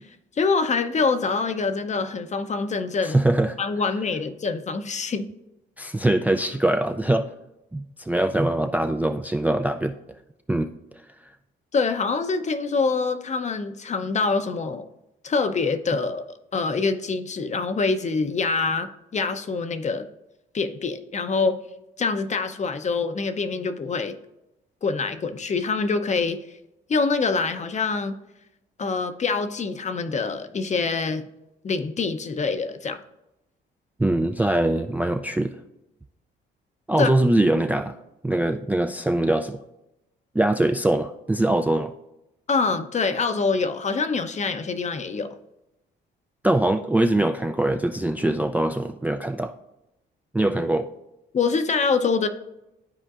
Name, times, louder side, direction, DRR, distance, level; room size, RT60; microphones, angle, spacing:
voice 1, 0.4-3.2 3.6-5.3 11.7-14.9 15.2-20.1 20.5-21.6 22.0-24.2 24.8-26.4 26.9-28.2 28.8-31.3 31.6-33.0 37.0-37.1 42.5-45.3 51.3-52.3, left 4 dB, 35° left, 0.7 m, -25 dB
voice 2, 3.0-3.6 5.8-7.3 7.7-10.0 10.5-10.7 34.0-35.6 36.9-38.0 38.2-39.6 40.3-41.9 46.4-49.5 50.3-50.9, right 1 dB, 10° right, 0.3 m, -22 dB
13.0 x 4.4 x 2.5 m
cardioid pair, 90°, 20 cm